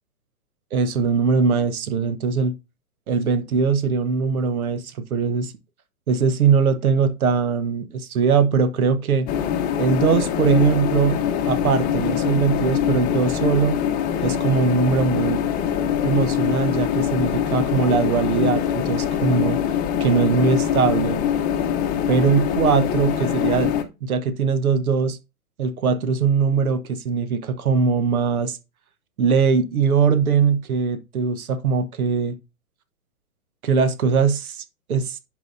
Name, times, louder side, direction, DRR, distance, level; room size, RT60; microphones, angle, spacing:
voice 1, 0.7-2.5 3.1-5.5 6.1-9.3 9.8-11.2 11.4-13.8 14.2-15.4 16.0-19.6 20.0-21.2 22.1-23.7 24.0-25.2 25.6-28.6 29.2-32.4 33.6-35.2, right 5 dB, 70° right, 1.2 m, -21 dB
sound 1, 9.3-23.8, left 9 dB, 20° left, 0.8 m, -23 dB
10.5 x 4.8 x 2.6 m
hypercardioid pair, 130°, 44 cm